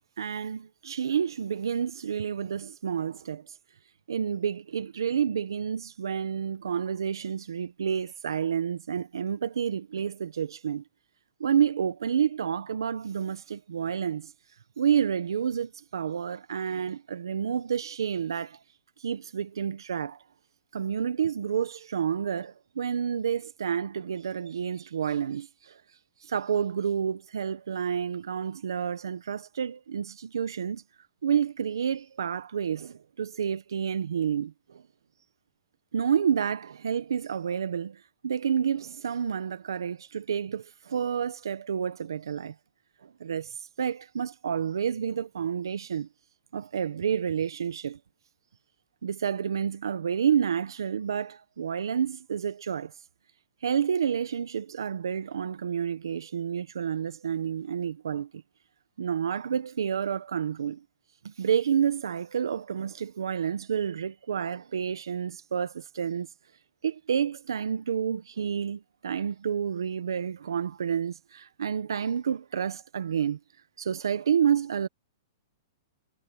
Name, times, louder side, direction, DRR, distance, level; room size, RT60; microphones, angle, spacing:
voice 1, 0.2-3.6 4.1-10.8 11.4-14.3 14.8-18.6 19.0-20.2 20.7-25.8 26.2-30.8 31.2-34.8 35.9-42.5 43.0-46.1 46.5-48.0 49.0-52.9 53.6-58.4 59.0-60.8 61.2-66.3 66.8-73.4 73.8-74.9, right 8 dB, 90° right, 1.1 m, -29 dB
hypercardioid pair, 135°, 2 cm